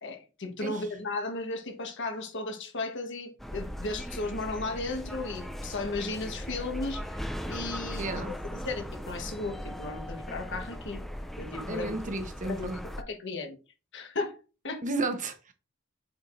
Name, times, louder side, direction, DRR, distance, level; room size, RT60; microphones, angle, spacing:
voice 1, 0.0-11.0 11.4-12.0 12.4-13.6 13.9-14.4 14.6-14.8, left 3 dB, 60° left, 1.3 m, -35 dB
sound 1, 3.4-13.0, equal, ahead, 0.4 m, -38 dB
voice 2, 8.0-8.4 11.7-12.8 14.8-15.5, right 2 dB, 40° right, 1.0 m, -33 dB
7.9 x 4.7 x 2.6 m
head